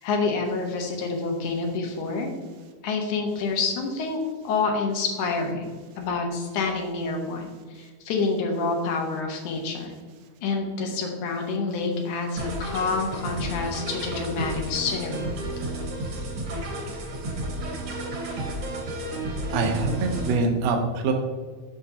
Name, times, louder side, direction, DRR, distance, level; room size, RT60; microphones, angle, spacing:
voice 1, 0.0-2.3 2.8-9.9 10.4-15.4, left 4 dB, 80° left, 2 dB, 2.4 m, -28 dB
sound 1, 12.4-20.4, right 1 dB, 50° right, 1.8 m, -32 dB
voice 2, 19.5-21.1, right 3 dB, 70° right, 2 dB, 1.7 m, -24 dB
7.5 x 5.9 x 2.7 m, 1.5 s
omnidirectional pair, 3.5 m